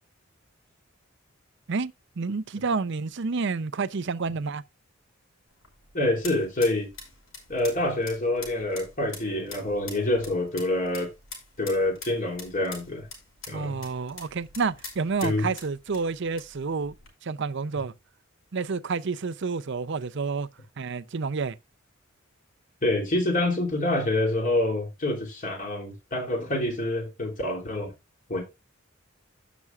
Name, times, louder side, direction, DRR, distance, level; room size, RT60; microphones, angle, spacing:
voice 1, 1.7-4.6 13.5-16.9 17.2-17.9 18.5-20.5 20.8-21.6, right 4 dB, 60° right, 0.6 m, -29 dB
sound 1, 5.5-17.1, left 4 dB, 85° left, 5.3 m, -45 dB
voice 2, 5.9-6.9 7.5-11.1 11.6-13.1 13.5-13.8 15.2-15.5 22.8-27.9 28.3-28.4, left 1 dB, 45° left, 3.1 m, -26 dB
16.5 x 6.1 x 2.4 m
head